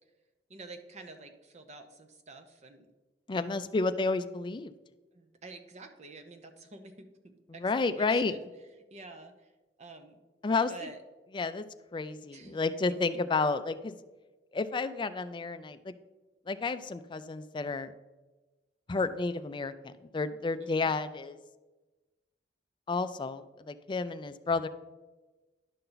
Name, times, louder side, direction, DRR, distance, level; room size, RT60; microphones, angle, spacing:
voice 1, 0.5-2.9 3.3-3.6 5.1-8.5 8.9-9.5 9.8-10.2 10.7-11.0 12.3-13.2 20.6-21.0, right 3 dB, 40° right, 7 dB, 0.8 m, -49 dB
voice 2, 3.3-4.7 7.6-8.4 10.4-10.7 11.3-11.6 11.9-13.9 14.5-15.9 16.5-17.9 18.9-21.4 22.9-24.7, left 3 dB, 25° left, 11 dB, 0.4 m, -31 dB
11.0 x 5.6 x 3.9 m, 1.2 s
head